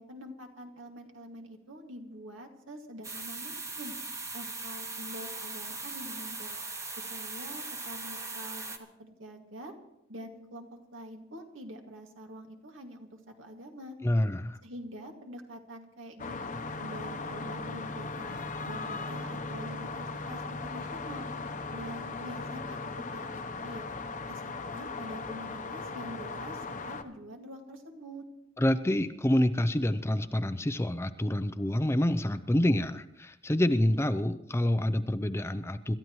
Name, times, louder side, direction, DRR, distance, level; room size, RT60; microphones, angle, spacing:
voice 1, 0.0-3.9 4.3-6.6 7.1-8.6 9.0-9.7 10.1-13.1 13.4-14.0 14.6-21.3 21.7-22.8 23.1-23.8 24.3-28.2, equal, 80° right, 3 dB, 2.2 m, -45 dB
sound 1, 3.0-8.8, right 3 dB, 15° right, 1.1 m, -39 dB
voice 2, 14.0-14.6 28.6-35.9, left 1 dB, 15° left, 11 dB, 0.5 m, -27 dB
sound 2, 16.2-27.0, left 3 dB, 40° left, 0.9 m, -38 dB
26.5 x 13.5 x 3.1 m, 0.83 s
head